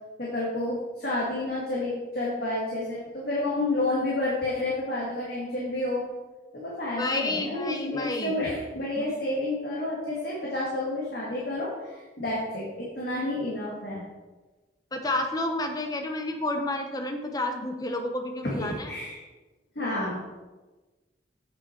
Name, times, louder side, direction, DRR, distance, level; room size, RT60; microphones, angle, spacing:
voice 1, 0.2-6.1 6.5-14.0 18.4-19.2 19.8-20.2, left 2 dB, 55° left, -6 dB, 1.8 m, -30 dB
voice 2, 7.0-8.4 14.9-18.9, left 2 dB, 20° left, 4 dB, 0.8 m, -30 dB
8.3 x 6.1 x 4.4 m, 1.2 s
head